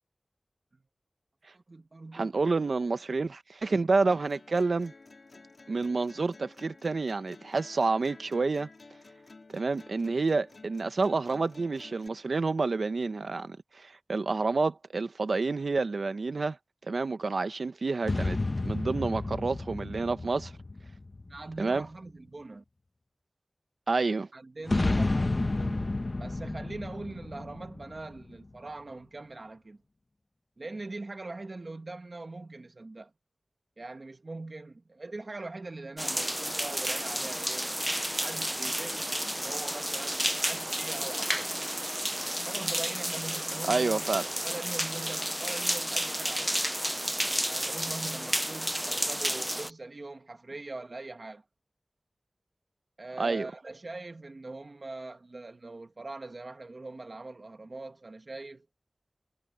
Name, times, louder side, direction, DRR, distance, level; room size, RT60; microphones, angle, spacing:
voice 1, 1.5-2.4 19.0-19.2 21.3-22.6 24.3-25.9 26.2-29.8 30.6-33.1 33.8-37.7 38.2-41.6 42.4-44.1 44.4-46.7 47.5-51.4 53.0-58.7, right 2 dB, 55° right, 1.5 m, -42 dB
voice 2, 2.1-4.9 5.7-8.7 9.5-16.6 16.9-18.4 18.6-20.5 21.6-21.8 23.9-24.3 43.7-44.3 53.2-53.5, right 3 dB, 85° right, 1.0 m, -29 dB
sound 1, 4.1-12.1, left 3 dB, 70° left, 2.5 m, -52 dB
sound 2, 18.0-21.7 24.7-28.4, left 2 dB, 50° left, 1.0 m, -31 dB
sound 3, 36.0-49.7, equal, 10° right, 0.3 m, -31 dB
wide cardioid pair, 60°, 0 cm